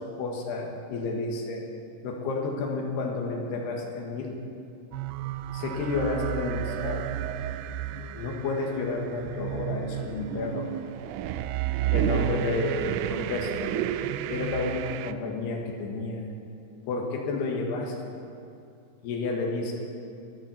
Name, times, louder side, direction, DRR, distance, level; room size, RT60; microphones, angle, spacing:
voice 1, 0.0-1.7 2.0-4.4 5.5-7.1 8.1-10.7 11.9-13.7 14.3-16.3 16.9-18.2 19.0-19.7, left 3 dB, 75° left, 0 dB, 3.7 m, -31 dB
sound 1, 4.9-15.1, right 12 dB, 85° right, 2.6 m, -31 dB
22.0 x 7.6 x 7.9 m, 2.6 s
omnidirectional pair, 4.8 m